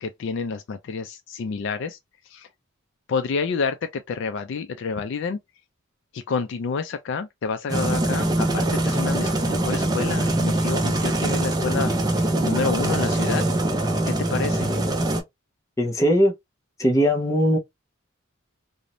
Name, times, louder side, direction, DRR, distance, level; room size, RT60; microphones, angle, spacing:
voice 1, 0.0-2.0 2.3-2.5 3.1-5.4 6.1-13.4 14.1-14.7, left 5 dB, 60° left, 0.3 m, -29 dB
sound 1, 7.7-15.2, right 1 dB, 20° right, 0.4 m, -23 dB
voice 2, 15.8-16.3 16.8-17.6, equal, 15° left, 0.7 m, -19 dB
2.5 x 2.0 x 2.9 m
head